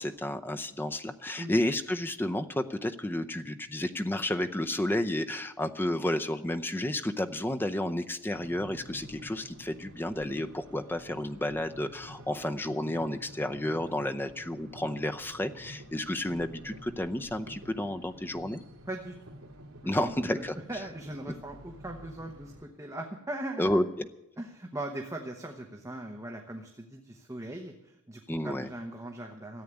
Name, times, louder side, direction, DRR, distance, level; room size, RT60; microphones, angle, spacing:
voice 1, 0.0-18.6 19.8-20.5 23.6-24.1 28.3-28.7, left 1 dB, 10° left, 7 dB, 0.6 m, -31 dB
sound 1, 8.3-22.6, equal, 75° right, 2.4 m, -49 dB
voice 2, 19.8-20.4 20.7-23.9 24.4-29.6, right 1 dB, 15° right, 2 dB, 1.0 m, -40 dB
14.0 x 8.4 x 9.7 m, 0.91 s
head